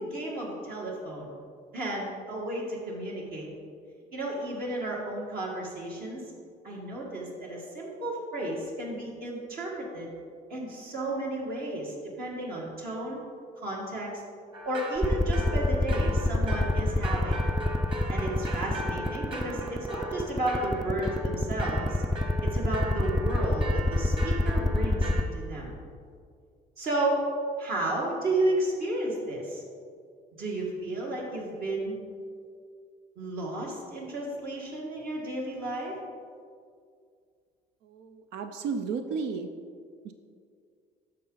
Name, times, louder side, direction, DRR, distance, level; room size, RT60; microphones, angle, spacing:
voice 1, 0.0-1.3 1.7-3.5 4.1-6.3 6.6-10.1 10.5-13.2 13.6-14.2 14.6-17.4 18.1-22.0 22.4-25.7 26.8-27.2 27.6-29.6 30.4-32.0 33.2-36.0, right 1 dB, 60° right, -3 dB, 2.0 m, -32 dB
sound 1, 14.5-25.2, right 1 dB, 30° right, 1.7 m, -38 dB
sound 2, 15.0-25.2, left 1 dB, ahead, 0.4 m, -24 dB
voice 2, 37.9-39.5 40.0-40.1, right 5 dB, 90° right, 7 dB, 0.6 m, -33 dB
9.8 x 6.5 x 4.0 m, 2.2 s
cardioid pair, 110°, 17 cm